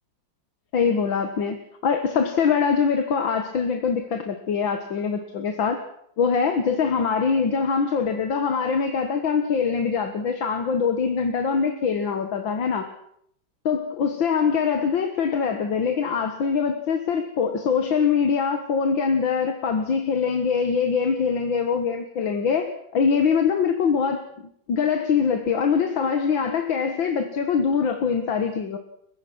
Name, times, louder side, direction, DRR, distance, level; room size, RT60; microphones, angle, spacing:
voice 1, 0.7-5.8 6.2-12.9 13.7-24.3 24.7-28.8, left 6 dB, 80° left, 6 dB, 2.2 m, -23 dB
29.5 x 16.0 x 6.2 m, 0.71 s
omnidirectional pair, 2.1 m